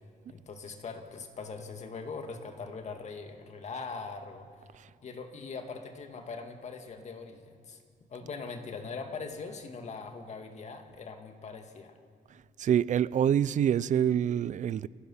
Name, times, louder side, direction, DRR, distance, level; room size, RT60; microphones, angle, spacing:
voice 1, 0.3-4.5 5.0-7.8 8.1-12.0, left 4 dB, 50° left, 2.0 m, -41 dB
voice 2, 12.6-14.9, right 9 dB, 55° right, 0.5 m, -26 dB
29.5 x 17.0 x 5.7 m
cardioid pair, 110°, 15 cm